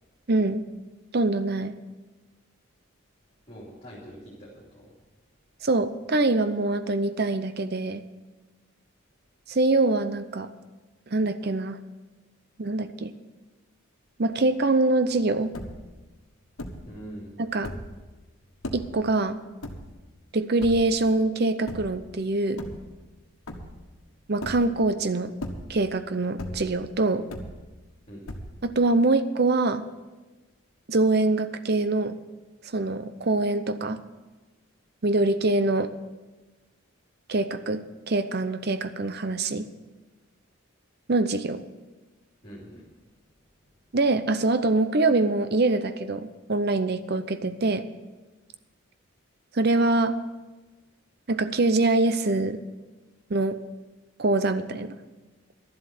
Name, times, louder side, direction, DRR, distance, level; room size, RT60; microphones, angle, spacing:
voice 1, 0.3-0.6 1.1-1.8 5.6-8.0 9.5-10.5 11.1-11.8 12.6-13.1 14.2-15.5 17.4-17.7 18.7-19.4 20.3-22.6 24.3-25.3 25.7-27.3 28.6-29.8 30.9-32.2 32.7-34.0 35.0-35.9 37.3-39.7 41.1-41.6 43.9-47.8 49.5-50.2 51.3-52.6 53.3-53.6 54.2-54.9, right 2 dB, 50° right, 12 dB, 0.7 m, -24 dB
voice 2, 3.5-4.9 16.8-17.3 28.1-28.2 42.4-42.8, equal, 30° left, -6 dB, 2.9 m, -43 dB
sound 1, 15.5-16.0 16.6-17.0 17.5-18.0 18.6-19.0 19.6-20.2 20.6-21.1 21.7-22.1 22.5-23.2 23.5-24.0 24.4-24.9 25.3-26.0 26.4-26.9 27.3-27.9 28.3-28.8, left 1 dB, 75° left, 1.4 m, -37 dB
12.0 x 7.8 x 8.3 m, 1.2 s
head